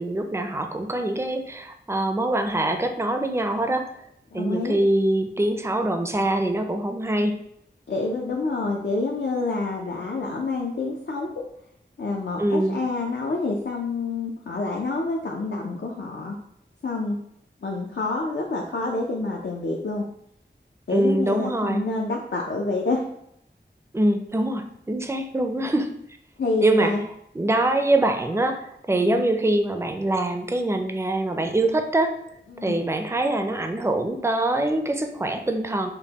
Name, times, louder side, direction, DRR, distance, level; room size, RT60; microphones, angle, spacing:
voice 1, 0.0-3.9 4.3-7.3 12.4-12.8 20.9-21.9 23.9-25.9 26.6-26.9 27.3-32.1 32.6-35.9, right 1 dB, 15° right, 5 dB, 0.4 m, -24 dB
voice 2, 4.3-4.8 7.9-11.3 12.0-16.4 16.8-17.2 17.6-20.0 20.9-23.0 26.4-27.0 28.9-29.2 32.5-32.7, left 3 dB, 70° left, -1 dB, 0.5 m, -27 dB
5.1 x 2.2 x 2.9 m, 0.74 s
wide cardioid pair, 55°, 19 cm